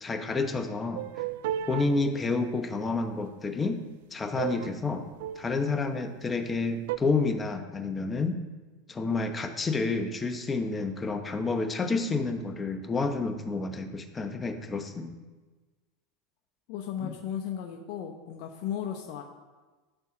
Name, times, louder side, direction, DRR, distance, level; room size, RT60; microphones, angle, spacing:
voice 1, 0.0-1.0 1.7-3.8 4.1-5.1 5.4-8.4 8.9-15.2 17.0-17.1, left 3 dB, 20° left, 6 dB, 1.0 m, -29 dB
sound 1, 0.9-1.9 4.4-4.7 5.1-5.7 6.9-7.0, right 12 dB, 70° right, 0.3 m, -33 dB
voice 2, 16.7-19.2, left 9 dB, 60° left, 2 dB, 0.8 m, -35 dB
12.5 x 4.3 x 6.1 m, 1.3 s
supercardioid pair, 115°, 0 cm